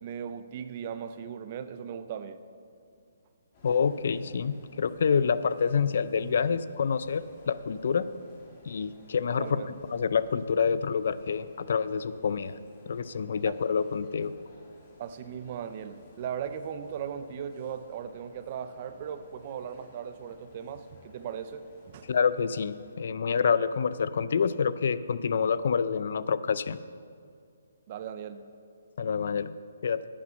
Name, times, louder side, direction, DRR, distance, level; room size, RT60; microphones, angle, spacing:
voice 1, 0.0-2.4 9.4-9.8 13.5-13.6 15.0-22.1 27.9-28.5, right 8 dB, 35° right, 11 dB, 0.5 m, -38 dB
sound 1, 3.5-23.0, left 2 dB, 30° left, 2.2 m, -56 dB
voice 2, 3.6-8.1 8.7-9.6 9.9-12.5 12.9-14.3 22.1-26.8 29.0-29.6 29.8-30.0, left 6 dB, 60° left, 15 dB, 0.5 m, -27 dB
10.5 x 8.7 x 6.9 m, 2.3 s
hypercardioid pair, 160°, 0 cm